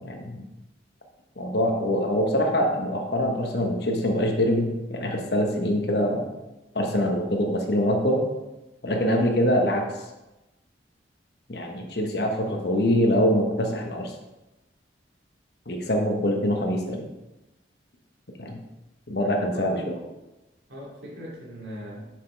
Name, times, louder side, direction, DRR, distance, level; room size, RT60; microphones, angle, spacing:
voice 1, 0.0-0.4 1.4-6.3 6.7-8.2 8.8-9.9 11.5-14.1 15.7-17.1 18.4-18.6 19.1-20.0, equal, 60° left, 2 dB, 1.1 m, -24 dB
voice 2, 19.2-20.0 20.7-22.1, equal, 80° right, -5 dB, 2.8 m, -39 dB
7.4 x 6.6 x 3.4 m, 1.0 s
head